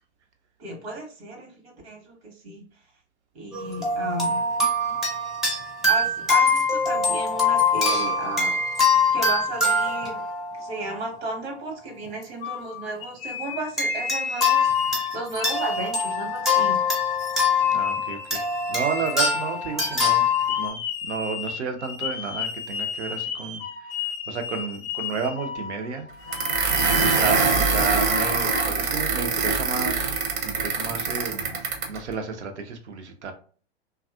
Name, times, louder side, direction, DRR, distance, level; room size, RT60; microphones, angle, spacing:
voice 1, 0.6-2.6 3.3-4.4 5.9-8.6 9.1-10.2 10.6-16.8 27.0-27.2, right 2 dB, 65° right, 1 dB, 1.1 m, -34 dB
sound 1, 3.5-11.4 12.1-12.2 13.8-20.7, left 3 dB, ahead, 0.4 m, -23 dB
sound 2, 12.4-15.1 15.4-28.8, left 6 dB, 50° left, 0.6 m, -34 dB
voice 2, 17.7-20.3 20.6-23.6 24.0-26.1 27.0-31.5 31.9-33.3, right 5 dB, 80° right, 6 dB, 0.7 m, -32 dB
sound 3, 26.3-32.0, right 5 dB, 45° right, 0.7 m, -24 dB
2.6 x 2.3 x 2.3 m, 0.42 s
hypercardioid pair, 105°, 34 cm